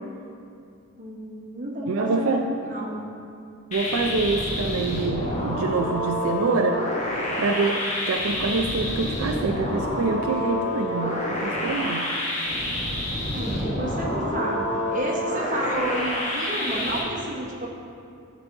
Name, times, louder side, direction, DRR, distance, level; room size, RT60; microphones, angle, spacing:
voice 1, 1.0-3.0 13.3-14.7 14.9-17.7, right 1 dB, 35° right, -2 dB, 1.0 m, -30 dB
voice 2, 1.9-2.5 3.7-6.8 7.4-12.1, right 4 dB, 75° right, 3 dB, 0.4 m, -26 dB
sound 1, 3.7-17.0, left 1 dB, 30° left, 1.1 m, -28 dB
11.5 x 4.0 x 3.7 m, 2.4 s
head